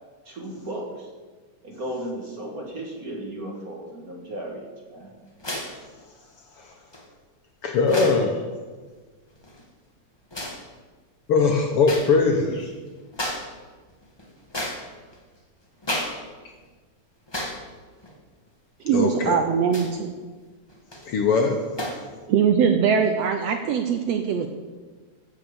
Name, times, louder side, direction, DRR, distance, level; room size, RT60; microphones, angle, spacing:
voice 1, 0.2-1.1 1.6-5.1, right 1 dB, 35° right, 0 dB, 1.7 m, -35 dB
sound 1, 5.4-5.8 6.9-7.0 7.8-8.3 9.3-9.6 10.3-10.6 11.8-12.1 12.5-12.6 13.1-13.5 13.9-15.2 15.8-16.2 16.5-16.6 17.3-17.7 18.0-18.1 19.7-20.0 20.7-21.1 21.8-22.1, left 1 dB, 20° left, 0.7 m, -32 dB
voice 2, 7.6-8.4 11.3-12.7 18.9-19.4 21.0-21.6, left 4 dB, 60° left, 2 dB, 1.6 m, -21 dB
voice 3, 18.8-20.1 22.3-24.5, right 7 dB, 70° right, 6 dB, 1.6 m, -21 dB
15.0 x 6.3 x 7.0 m, 1.4 s
omnidirectional pair, 3.5 m